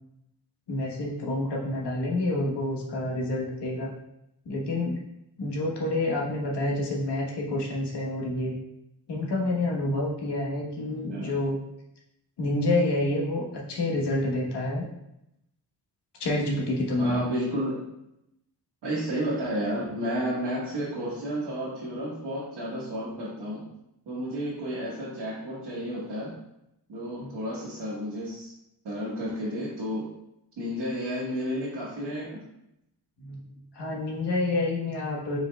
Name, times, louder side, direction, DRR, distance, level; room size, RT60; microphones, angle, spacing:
voice 1, 0.7-3.9 4.4-5.0 5.4-8.6 9.1-11.6 12.4-14.9 16.2-17.2 27.2-27.3 33.2-33.4 33.7-35.4, left 2 dB, 75° left, -2 dB, 1.2 m, -28 dB
voice 2, 17.0-17.8 18.8-23.7 24.1-26.4 26.9-28.5 28.8-30.2 30.6-32.5, equal, 90° right, -9 dB, 1.4 m, -31 dB
4.8 x 4.6 x 2.3 m, 0.83 s
cardioid pair, 95°, 41 cm